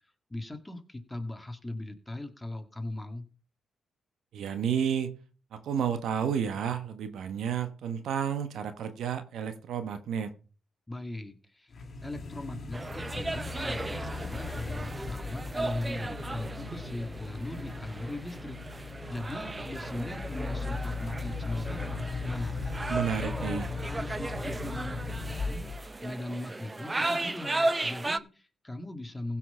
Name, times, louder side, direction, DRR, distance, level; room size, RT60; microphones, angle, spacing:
voice 1, 0.3-3.2 10.9-11.7 12.0-25.6 26.0-29.4, left 2 dB, 15° left, 6 dB, 2.2 m, -39 dB
voice 2, 4.3-5.1 5.5-10.3 22.9-23.7, right 8 dB, 75° right, 10 dB, 1.3 m, -31 dB
sound 1, 11.7-26.0, left 4 dB, 50° left, 2.3 m, -38 dB
sound 2, 12.7-28.2, right 2 dB, 25° right, 0.6 m, -36 dB
16.0 x 5.8 x 5.6 m, 0.37 s
supercardioid pair, 60°, 0 cm